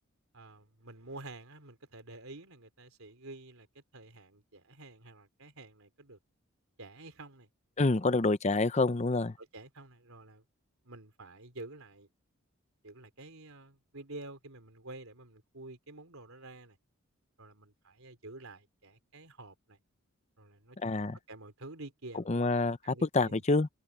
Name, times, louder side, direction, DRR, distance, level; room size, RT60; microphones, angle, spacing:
voice 1, 0.3-6.2 6.8-7.5 8.0-8.1 9.4-10.4 10.8-12.1 12.8-16.8 17.4-19.8 20.4-21.0 21.3-22.5 22.8-23.4, right 2 dB, 75° right, 3.6 m, -49 dB
voice 2, 7.8-9.3 20.8-21.2 22.3-23.7, left 3 dB, 30° left, 0.6 m, -27 dB
head